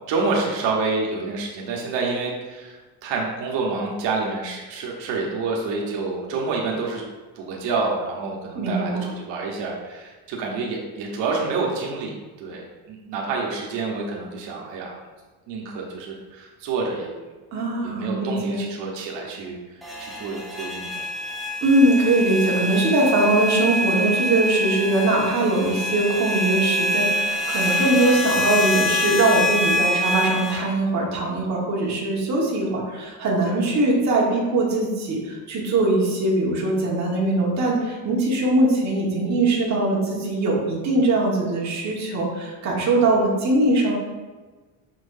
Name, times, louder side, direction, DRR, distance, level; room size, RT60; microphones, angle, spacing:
voice 1, 0.1-7.0 7.4-12.1 12.4-12.6 12.9-15.0 15.5-17.1 17.8-21.0 33.4-33.6, right 4 dB, 85° right, -1 dB, 1.2 m, -28 dB
voice 2, 8.5-9.0 17.5-18.6 21.6-43.9, right 2 dB, 40° right, -4 dB, 1.6 m, -21 dB
sound 1, 19.8-30.6, left 1 dB, ahead, 0.8 m, -25 dB
6.2 x 6.1 x 2.7 m, 1.3 s
cardioid pair, 155°, 43 cm